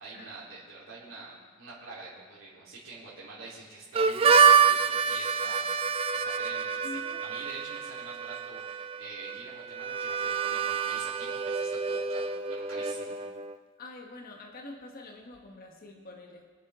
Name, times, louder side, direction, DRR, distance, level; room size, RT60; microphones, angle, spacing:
voice 1, 0.0-13.1, right 3 dB, 70° right, -7 dB, 3.7 m, -46 dB
Harmonica, 3.9-13.6, right 6 dB, 30° right, 0.4 m, -27 dB
voice 2, 6.8-7.2 13.8-16.5, left 2 dB, 45° left, 1 dB, 1.4 m, -45 dB
23.5 x 8.1 x 3.7 m, 1.5 s
head